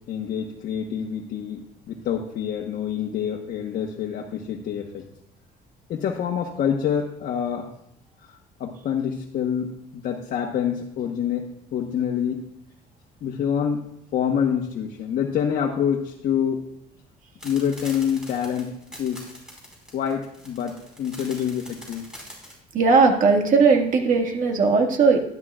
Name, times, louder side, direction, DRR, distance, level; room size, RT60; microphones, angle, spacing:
voice 1, 0.0-5.0 5.9-7.7 8.2-11.5 11.7-12.4 13.2-13.9 14.1-16.7 17.4-18.7 19.0-19.3 19.9-22.1, left 8 dB, 60° left, 0 dB, 1.2 m, -26 dB
sound 1, 17.4-22.6, equal, 5° right, 4.7 m, -42 dB
voice 2, 22.7-25.2, right 4 dB, 50° right, 2 dB, 1.9 m, -18 dB
12.5 x 12.0 x 2.5 m, 0.74 s
cardioid pair, 110°, 17 cm